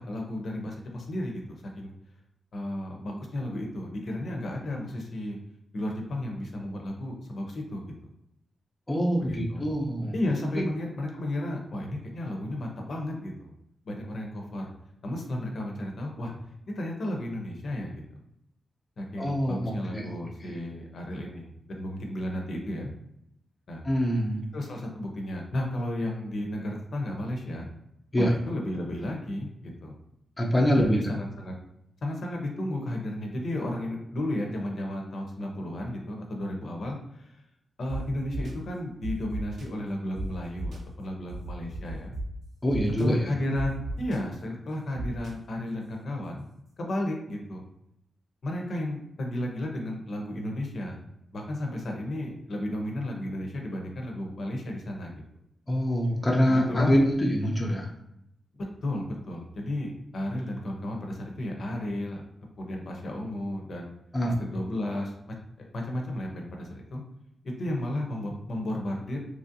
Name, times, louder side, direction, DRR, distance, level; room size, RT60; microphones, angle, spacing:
voice 1, 0.0-1.9 2.5-5.4 5.7-7.8 9.2-9.6 10.1-13.5 13.8-14.7 15.0-16.3 16.8-17.9 19.0-22.9 23.7-23.8 24.5-27.7 28.2-30.0 30.7-31.5 32.0-37.4 37.8-42.1 43.0-46.4 46.8-47.6 48.4-51.0 51.3-55.2 56.5-57.0 58.5-62.2 62.6-63.9 64.2-65.3 65.7-67.0 67.4-69.2, left 1 dB, 60° left, 1 dB, 0.6 m, -33 dB
voice 2, 8.9-10.1 10.6-10.7 19.2-20.2 20.4-20.6 23.8-24.5 28.1-28.3 30.4-31.1 42.6-43.3 55.7-57.9 64.1-64.4, equal, 15° left, -1 dB, 0.5 m, -25 dB
sound 1, 37.9-38.0 38.3-38.5 39.0-39.6 40.1-40.2 40.6-40.8 41.3-42.2 42.7-43.0 43.5-44.2 45.0-45.3, right 2 dB, 60° right, 0.6 m, -35 dB
3.0 x 2.5 x 2.6 m, 0.79 s
wide cardioid pair, 125°, 0 cm